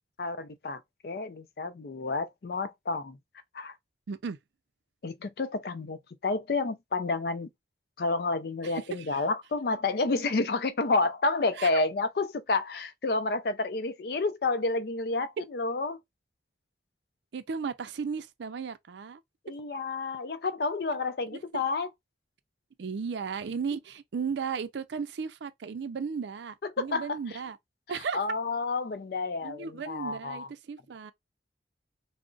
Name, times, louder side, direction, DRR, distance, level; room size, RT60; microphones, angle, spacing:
voice 1, 0.2-3.2 3.5-3.7 5.0-7.5 8.0-16.0 19.5-21.9 26.8-27.2 28.1-30.5, left 3 dB, 55° left, 0.4 m, -30 dB
voice 2, 8.6-9.2 11.6-11.7 17.3-19.2 21.3-21.6 22.8-27.6 27.9-28.2 29.4-31.1, right 5 dB, 75° right, 0.4 m, -35 dB
2.4 x 2.0 x 3.7 m
head